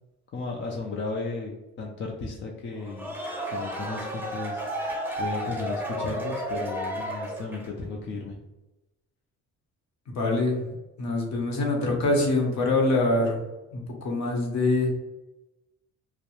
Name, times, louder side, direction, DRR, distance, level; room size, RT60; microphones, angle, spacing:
voice 1, 0.3-3.1 3.5-4.6 5.2-8.4, left 3 dB, 40° left, 0 dB, 0.4 m, -34 dB
sound 1, 2.8-7.8, equal, 5° right, 0.7 m, -32 dB
voice 2, 10.1-10.7 11.0-13.4 13.7-14.9, left 2 dB, 65° left, 0 dB, 0.9 m, -24 dB
2.2 x 2.0 x 2.9 m, 1.0 s
cardioid pair, 90°, 30 cm